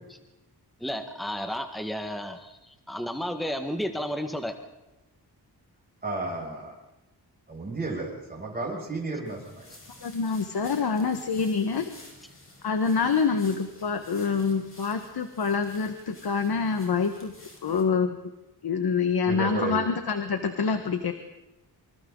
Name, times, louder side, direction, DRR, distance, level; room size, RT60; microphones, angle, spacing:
voice 1, 0.8-4.5, equal, ahead, 5 dB, 1.7 m, -32 dB
voice 2, 6.0-6.7 7.5-9.7 17.7-17.8 19.3-19.8, right 3 dB, 25° right, -3 dB, 7.4 m, -33 dB
sound 1, 9.3-17.8, left 2 dB, 30° left, 6.1 m, -52 dB
voice 3, 10.0-11.9 12.6-17.3 17.6-18.3 18.6-21.1, left 5 dB, 70° left, 7 dB, 1.7 m, -26 dB
27.0 x 26.0 x 4.0 m, 1.0 s
wide cardioid pair, 150°, 39 cm